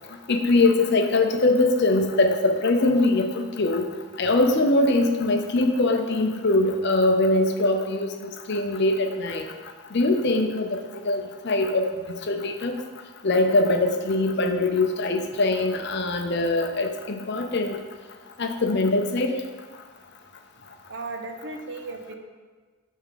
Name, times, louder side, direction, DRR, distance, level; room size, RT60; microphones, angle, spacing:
voice 1, 0.3-3.9 4.2-9.4 9.9-11.9 12.3-12.8 13.2-17.8 18.4-19.3, left 2 dB, 50° left, 5 dB, 0.6 m, -22 dB
voice 2, 20.9-22.1, right 3 dB, 50° right, 4 dB, 0.7 m, -35 dB
8.4 x 3.6 x 5.7 m, 1.5 s
head